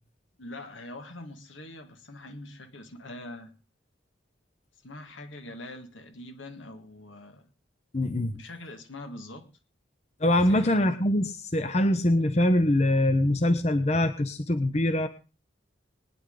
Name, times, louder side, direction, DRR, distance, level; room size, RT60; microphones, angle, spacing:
voice 1, 0.4-3.5 4.8-7.5 8.4-9.5 10.4-10.8, left 1 dB, 80° left, 2.0 m, -43 dB
voice 2, 7.9-8.4 10.2-15.1, left 1 dB, 35° left, 0.8 m, -23 dB
21.0 x 9.9 x 3.8 m
head